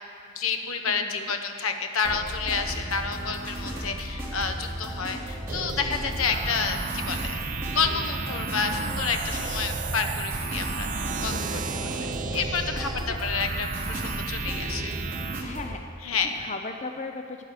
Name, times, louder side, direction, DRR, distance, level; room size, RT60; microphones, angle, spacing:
voice 1, 0.3-7.4 7.6-11.6 12.1-14.9 16.0-16.3, left 5 dB, 80° left, 6 dB, 1.0 m, -29 dB
voice 2, 0.9-1.3 11.2-12.2 13.1-13.2 15.4-15.8 16.3-17.4, left 3 dB, 35° left, 5 dB, 0.5 m, -38 dB
sound 1, 2.0-15.8, equal, 15° right, 2.9 m, -35 dB
sound 2, 5.5-15.4, right 5 dB, 40° right, 0.6 m, -33 dB
10.5 x 9.4 x 6.7 m, 2.4 s
head